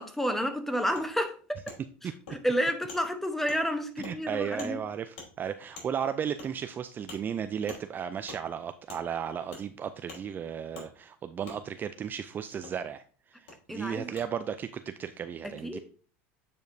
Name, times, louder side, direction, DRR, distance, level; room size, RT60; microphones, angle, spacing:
voice 1, 0.0-1.6 2.0-4.8 13.7-14.1 15.4-15.8, equal, 5° left, 0.9 m, -30 dB
Wood, 1.0-1.1 1.7-1.8 2.3-2.4 2.9-3.0 3.5-3.6 4.0-4.1 4.6-4.7 5.2-5.3 5.8-5.9 6.4-6.5 7.1-7.2 7.7-7.8 8.3-8.4 8.9-9.0 9.5-9.7 10.1-10.2 10.7-10.9 11.5-11.6 12.6-12.7 13.5-13.6 14.2-14.3, left 3 dB, 85° left, 3.2 m, -44 dB
voice 2, 4.0-15.8, right 8 dB, 30° right, 0.4 m, -35 dB
8.8 x 5.1 x 2.7 m
supercardioid pair, 110°, 7 cm